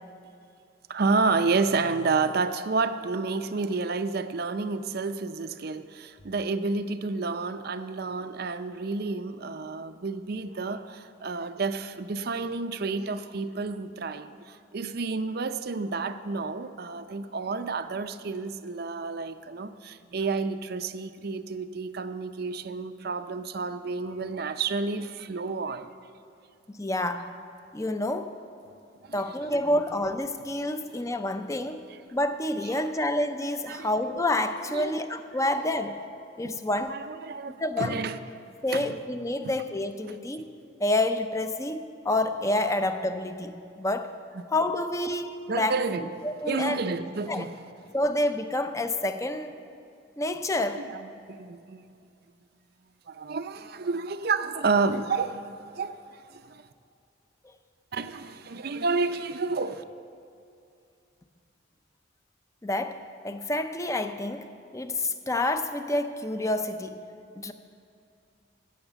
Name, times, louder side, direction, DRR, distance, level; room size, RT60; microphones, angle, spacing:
voice 1, 0.9-25.9 29.0-29.2 29.7-29.8 31.9-32.0 32.8-32.9 33.7-33.9 34.7-35.0 35.6-35.7 36.7-38.2 38.7-39.0 39.4-39.5 44.3-44.4 45.5-46.1 46.5-47.6 50.7-51.9 53.1-56.6 57.9-59.8, right 4 dB, 50° right, 0.5 m, -30 dB
voice 2, 26.7-27.3 27.7-28.3 29.1-31.8 32.1-36.0 36.4-37.0 37.6-38.0 38.6-40.4 40.8-44.1 44.5-45.8 46.2-46.8 47.3-47.5 47.9-49.5 50.2-50.8 62.6-64.5 64.7-67.0 67.4-67.5, left 1 dB, 15° left, 0.5 m, -28 dB
16.0 x 6.6 x 8.0 m
head